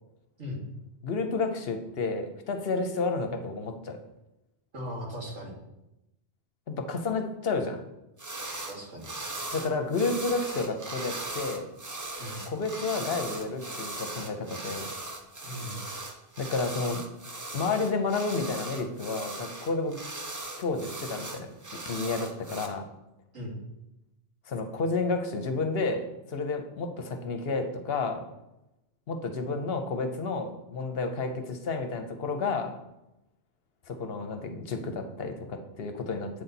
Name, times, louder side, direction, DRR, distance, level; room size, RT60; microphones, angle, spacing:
voice 1, 1.0-4.0 6.7-7.8 9.5-11.7 12.5-14.9 16.4-17.0 17.5-20.0 20.6-21.5 21.9-22.8 24.5-28.2 29.1-32.7 33.9-36.3, left 3 dB, 60° left, 6 dB, 0.9 m, -31 dB
voice 2, 4.7-5.5 8.7-9.1 12.2-12.4 15.4-15.8 23.3-23.6, equal, 90° right, -3 dB, 2.2 m, -38 dB
sound 1, 8.2-8.8 9.0-22.7, right 2 dB, 20° right, 0.5 m, -38 dB
8.0 x 4.2 x 4.0 m, 0.90 s
omnidirectional pair, 1.2 m